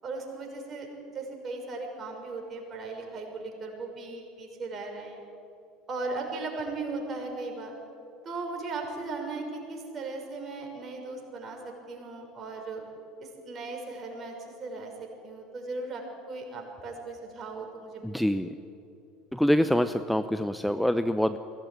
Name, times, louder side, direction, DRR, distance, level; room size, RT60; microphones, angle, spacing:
voice 1, 0.0-5.2 5.9-7.7 8.2-12.8 13.2-18.0, right 3 dB, 35° right, 2 dB, 6.3 m, -37 dB
voice 2, 18.0-18.5 19.3-21.4, equal, ahead, 11 dB, 0.8 m, -25 dB
22.0 x 17.5 x 9.6 m, 2.8 s
hypercardioid pair, 70°, 0 cm